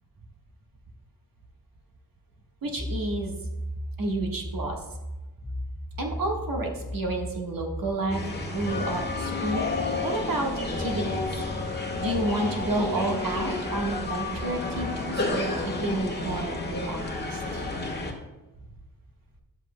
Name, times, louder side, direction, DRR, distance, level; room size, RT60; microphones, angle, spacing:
voice 1, 2.6-3.4 4.0-4.8 6.0-9.7 10.0-11.4 12.0-17.0 17.3-17.6, right 2 dB, 55° right, 1 dB, 1.5 m, -30 dB
sound 1, 2.8-10.1 10.7-13.2, equal, 10° left, 0.4 m, -37 dB
sound 2, 8.1-18.1, left 3 dB, 25° left, 1.3 m, -31 dB
11.0 x 7.5 x 2.2 m, 1.1 s
cardioid pair, 65°, 40 cm